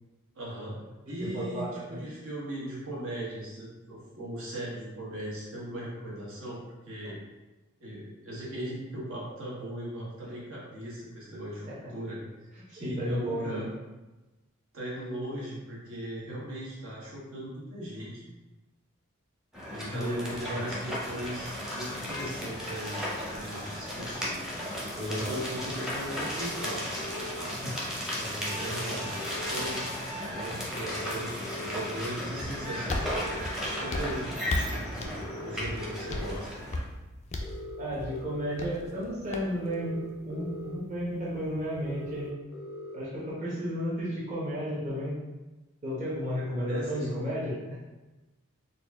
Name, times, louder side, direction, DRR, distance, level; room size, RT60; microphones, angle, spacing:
voice 1, 0.3-0.8 1.1-6.6 6.9-7.2 7.8-12.2 12.7-13.7 14.7-18.3 19.7-24.4 25.0-26.9 28.1-29.9 30.3-33.2 33.8-36.5 46.6-47.1, right 1 dB, 75° right, -5 dB, 1.2 m, -38 dB
voice 2, 1.2-2.0 11.7-11.8 12.8-13.7 19.9-20.2 20.5-20.6 24.9-25.3 27.5-27.7 37.8-42.3 42.9-45.2 45.8-47.6, equal, 35° right, -8 dB, 0.8 m, -33 dB
sound 1, 19.5-36.8, equal, 5° right, 0.6 m, -35 dB
sound 2, 26.4-27.4 28.5-29.6 30.7-31.9 33.0-34.1 35.2-36.3 37.4-38.5 39.6-40.8 41.8-43.0, left 1 dB, 80° left, 0.7 m, -42 dB
sound 3, 32.4-42.3, left 2 dB, 30° left, 0.3 m, -38 dB
4.1 x 2.2 x 3.4 m, 1.1 s
head